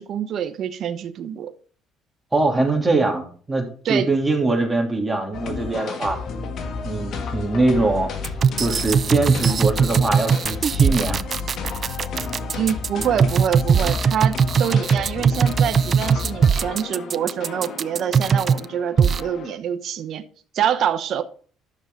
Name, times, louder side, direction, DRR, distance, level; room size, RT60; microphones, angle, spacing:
voice 1, 0.0-1.5 3.8-4.1 12.5-20.2 20.5-21.2, right 9 dB, 60° right, 0.9 m, -26 dB
voice 2, 2.3-6.2 6.8-8.1 8.6-11.2, right 2 dB, 15° right, 2.9 m, -22 dB
sound 1, 5.3-19.6, left 4 dB, 60° left, 1.6 m, -31 dB
sound 2, 8.2-18.6 19.0-19.2, right 6 dB, 45° right, 0.4 m, -19 dB
10.5 x 6.6 x 3.8 m
supercardioid pair, 85°, 0 cm